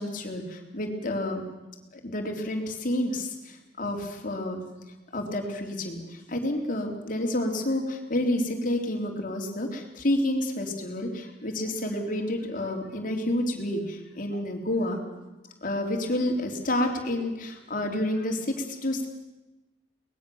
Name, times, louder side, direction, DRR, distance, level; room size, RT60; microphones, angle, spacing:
voice 1, 0.0-1.4 1.9-4.6 5.1-15.2 15.6-19.1, left 1 dB, 50° left, 3 dB, 3.5 m, -29 dB
23.5 x 20.0 x 7.1 m, 1.1 s
head